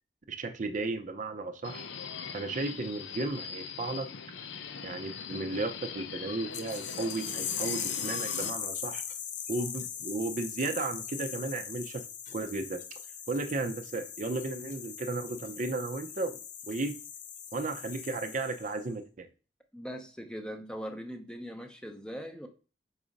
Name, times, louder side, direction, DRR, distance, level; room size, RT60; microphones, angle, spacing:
voice 1, 0.3-1.8 2.3-4.1 4.8-9.0 9.5-12.8 13.3-16.4 16.7-16.9 17.5-19.3, right 3 dB, 45° right, 8 dB, 0.5 m, -34 dB
Subway metro underground, 1.6-8.5, left 6 dB, 85° left, 0.6 m, -41 dB
sound 1, 6.5-18.8, left 8 dB, 45° left, 0.6 m, -39 dB
voice 2, 19.7-22.5, equal, 5° left, 6 dB, 0.6 m, -40 dB
4.8 x 3.9 x 5.0 m, 0.35 s
head